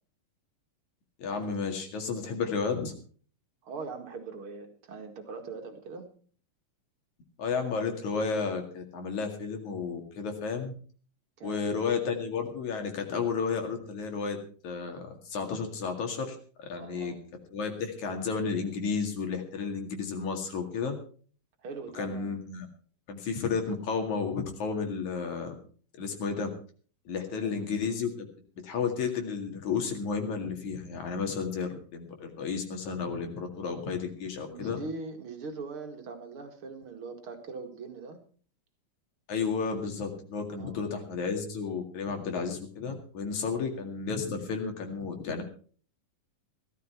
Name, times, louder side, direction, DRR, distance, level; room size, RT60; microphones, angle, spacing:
voice 1, 1.2-2.9 7.4-10.7 11.4-14.4 14.6-17.1 17.5-21.0 21.9-22.7 23.1-25.6 26.0-26.5 27.1-28.1 28.6-34.8 39.3-45.4, left 5 dB, 60° left, 4 dB, 3.4 m, -32 dB
voice 2, 3.6-6.1 11.4-11.7 16.8-17.1 21.6-22.3 27.3-27.6 34.5-38.2 40.6-41.0 43.4-43.6, right 4 dB, 45° right, 5 dB, 2.4 m, -41 dB
17.0 x 13.0 x 4.5 m, 0.43 s
omnidirectional pair, 3.9 m